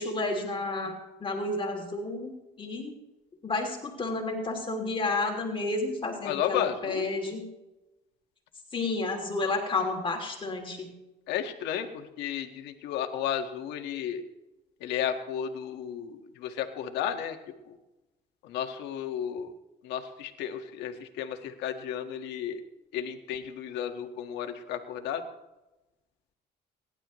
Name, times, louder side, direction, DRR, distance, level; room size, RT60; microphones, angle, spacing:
voice 1, 0.0-2.3 2.6-2.9 3.4-7.4 8.7-10.9, left 3 dB, 30° left, 1 dB, 2.8 m, -31 dB
voice 2, 6.2-7.1 11.3-14.2 14.8-17.4 17.7-17.8 18.4-19.5 19.8-22.6 22.9-25.2, left 9 dB, 85° left, 6 dB, 1.7 m, -33 dB
28.5 x 11.5 x 3.1 m, 1.0 s
cardioid pair, 110°, 17 cm